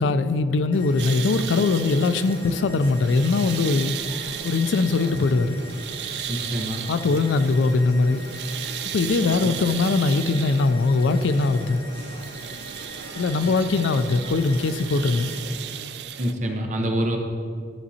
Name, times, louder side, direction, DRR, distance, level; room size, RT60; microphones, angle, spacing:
voice 1, 0.0-3.9 4.4-5.6 6.9-8.2 8.9-11.8 13.2-15.3, left 3 dB, 80° left, 11 dB, 0.4 m, -21 dB
sound 1, 0.7-15.4, left 2 dB, 65° left, 1.6 m, -43 dB
sound 2, 1.0-16.3, right 9 dB, 65° right, 0.3 m, -35 dB
voice 2, 6.3-6.8 9.4-9.5 16.2-17.2, equal, 40° right, 3 dB, 0.8 m, -26 dB
12.0 x 6.1 x 2.8 m, 2.3 s
head